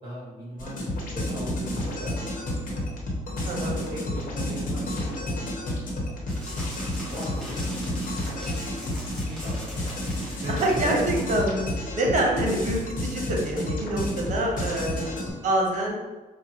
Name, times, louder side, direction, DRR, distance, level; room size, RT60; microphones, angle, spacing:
voice 1, 0.0-2.8 3.3-6.0 6.3-6.7 7.1-8.4 9.2-10.9 14.8-15.0, equal, 30° right, -6 dB, 1.5 m, -40 dB
sound 1, 0.6-15.3, left 1 dB, 65° left, 1.1 m, -31 dB
voice 2, 3.4-3.8 10.5-11.6 12.0-15.2 15.4-15.9, right 1 dB, 55° right, 0 dB, 1.0 m, -26 dB
sound 2, 6.3-11.3, equal, 5° left, 1.1 m, -41 dB
5.0 x 2.1 x 3.0 m, 1.2 s
cardioid pair, 105°, 15 cm